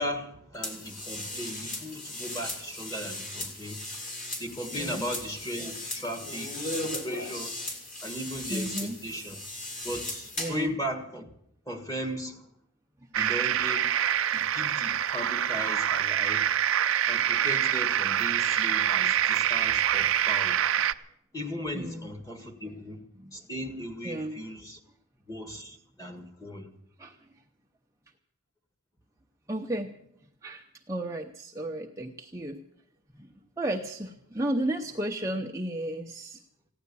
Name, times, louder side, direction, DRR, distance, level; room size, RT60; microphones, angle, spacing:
voice 1, 0.0-3.8 4.4-7.5 8.0-9.6 9.8-11.3 11.7-12.4 13.1-13.9 14.3-16.5 17.1-20.6 21.3-23.0 23.3-24.8 25.3-26.7, equal, 15° left, 7 dB, 1.6 m, -37 dB
sound 1, 0.6-10.7, left 1 dB, 35° left, 3.1 m, -37 dB
voice 2, 4.7-5.1 6.9-7.0 8.5-9.0 10.4-10.8 21.7-22.1 22.4-22.5 23.1-23.4 24.0-24.4 27.0-27.3 29.5-29.9 30.4-32.6 33.1-36.4, right 1 dB, 15° right, 1 dB, 0.7 m, -33 dB
sound 2, 13.1-20.9, right 10 dB, 60° right, 0.5 m, -25 dB
15.5 x 10.5 x 8.4 m, 0.74 s
head